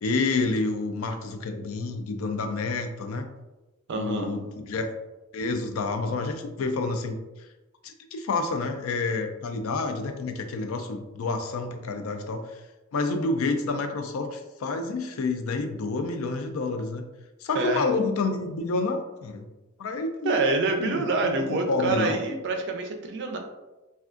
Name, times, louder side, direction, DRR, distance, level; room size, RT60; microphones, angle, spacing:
voice 1, 0.0-3.3 3.9-4.9 5.3-7.2 7.8-12.4 12.9-17.0 17.4-19.5 19.8-20.4 20.8-21.3 21.7-22.2, left 3 dB, 75° left, 6 dB, 0.4 m, -29 dB
voice 2, 3.9-4.3 17.5-17.9 20.2-23.4, right 3 dB, 55° right, 4 dB, 0.5 m, -26 dB
3.4 x 2.3 x 2.4 m, 1.1 s
head